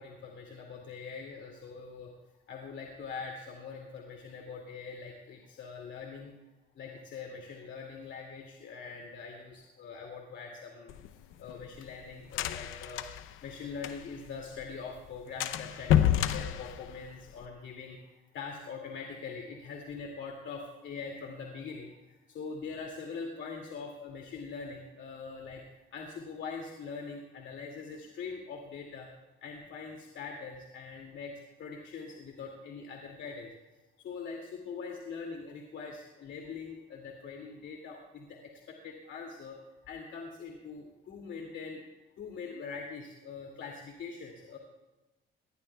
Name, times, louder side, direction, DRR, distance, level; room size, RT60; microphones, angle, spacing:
voice 1, 0.0-2.1 2.5-6.3 6.8-10.9 11.4-13.1 13.4-21.9 22.3-25.6 25.9-29.1 29.4-31.3 31.6-33.5 34.0-38.4 38.7-39.6 39.9-41.8 42.2-44.6, left 5 dB, 70° left, 0 dB, 2.4 m, -43 dB
sound 1, 10.9-14.3 14.6-14.7 15.0-15.1 15.4-17.5, left 10 dB, 90° left, 0.7 m, -29 dB
24.0 x 19.0 x 2.3 m, 1.1 s
cardioid pair, 90°, 20 cm